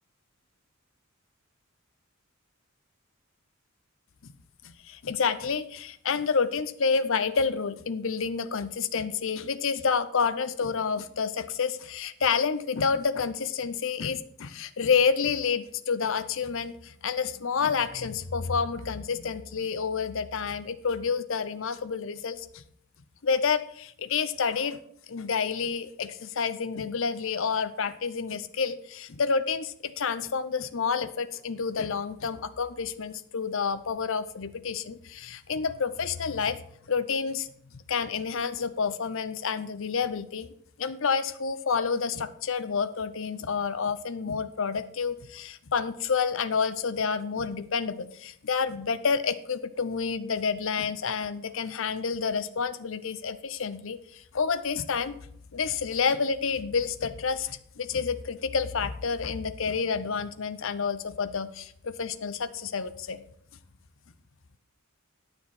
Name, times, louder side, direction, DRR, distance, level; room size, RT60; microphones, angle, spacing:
voice 1, 4.8-22.6 23.2-24.8 25.1-36.6 36.9-37.5 37.9-40.5 40.8-55.2 55.5-63.2, left 5 dB, 65° left, 12 dB, 0.7 m, -29 dB
9.7 x 6.9 x 5.7 m, 0.66 s
head